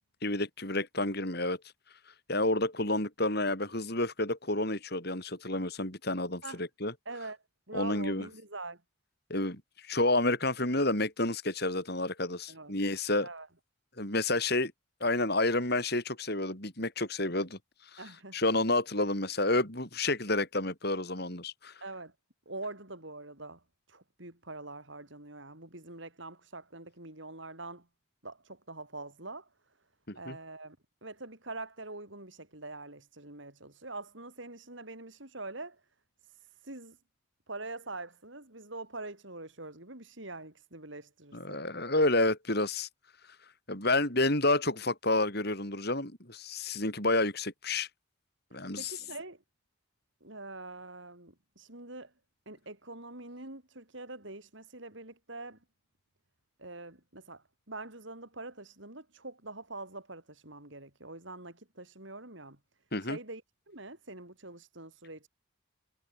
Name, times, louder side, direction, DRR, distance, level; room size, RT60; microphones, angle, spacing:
voice 1, 0.2-1.6 2.3-6.9 7.7-8.3 9.3-13.3 14.0-14.7 15.0-17.6 17.9-18.0 18.3-21.7 30.1-30.4 41.3-42.9 43.7-47.9 48.5-48.9 62.9-63.2, left 2 dB, 50° left, 6.0 m, -30 dB
voice 2, 7.0-7.4 7.7-8.8 12.5-12.7 13.2-13.5 18.0-18.4 21.8-22.1 22.4-23.6 23.9-27.9 28.2-29.5 30.1-30.8 31.0-35.8 36.2-37.0 37.5-41.6 48.5-49.4 50.2-52.1 52.4-55.6 56.6-62.6 63.0-65.3, right 2 dB, 65° right, 5.0 m, -44 dB
head